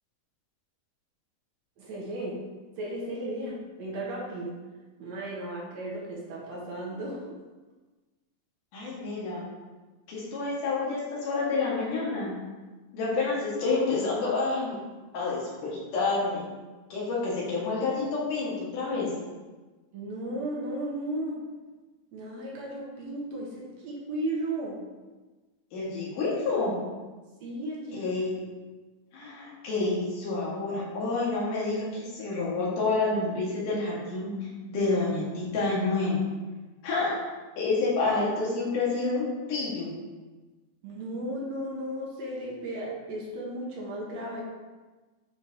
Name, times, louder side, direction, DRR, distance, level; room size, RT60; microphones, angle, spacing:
voice 1, 1.8-2.4 2.8-4.6 5.0-7.3 19.9-21.4 22.1-24.8 27.4-28.1 40.8-44.4, right 1 dB, 65° right, -3 dB, 2.1 m, -35 dB
voice 2, 8.7-9.4 10.1-12.3 12.9-14.8 15.1-16.5 16.9-19.1 25.7-26.8 27.9-28.4 29.1-34.3 34.7-36.2 36.8-37.1 37.6-39.9, left 3 dB, 85° left, -6 dB, 3.3 m, -28 dB
8.6 x 4.8 x 2.8 m, 1.3 s
omnidirectional pair, 3.6 m